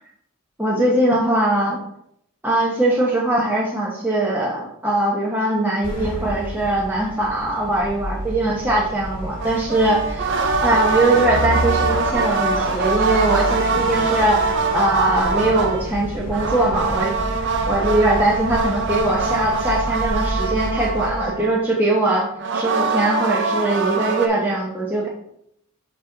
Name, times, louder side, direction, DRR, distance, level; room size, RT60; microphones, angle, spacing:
voice 1, 0.6-1.8 2.4-10.3 10.6-14.4 14.7-25.1, right 1 dB, 10° right, -4 dB, 0.8 m, -21 dB
sound 1, 5.8-21.3, equal, 45° left, 1.8 m, -30 dB
sound 2, 9.4-15.9 16.3-21.7 22.4-24.3, right 4 dB, 55° right, 0.6 m, -23 dB
5.3 x 4.1 x 4.5 m, 0.73 s
head